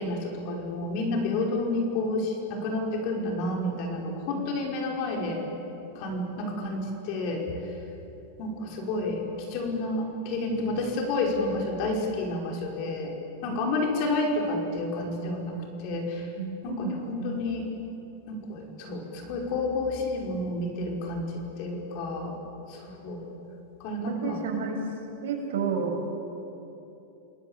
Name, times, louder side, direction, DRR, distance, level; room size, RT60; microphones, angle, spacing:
voice 1, 0.0-5.4 6.0-7.5 8.4-9.2 9.5-13.1 13.4-16.3 16.6-17.7 18.3-22.3 22.7-23.3 23.8-24.4, left 2 dB, 45° left, 1 dB, 5.6 m, -30 dB
voice 2, 16.4-17.4 24.1-24.8 25.2-26.0, right 5 dB, 75° right, 1 dB, 6.5 m, -31 dB
29.5 x 19.5 x 8.4 m, 2.9 s
supercardioid pair, 150°, 0 cm